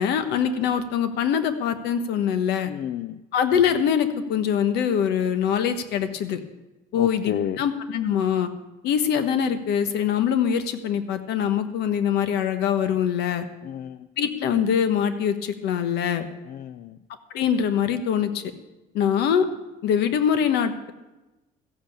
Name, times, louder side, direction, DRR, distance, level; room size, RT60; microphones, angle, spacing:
voice 1, 0.0-2.7 3.3-6.4 6.9-8.5 8.8-13.5 14.2-16.3 17.3-18.4 18.9-19.5 19.8-20.9, left 8 dB, 85° left, 10 dB, 1.2 m, -23 dB
voice 2, 2.7-3.1 6.9-7.6 13.6-14.1 16.5-17.0, left 10 dB, 60° left, 13 dB, 0.5 m, -31 dB
14.5 x 7.9 x 8.5 m, 1.1 s
cardioid pair, 110°, 17 cm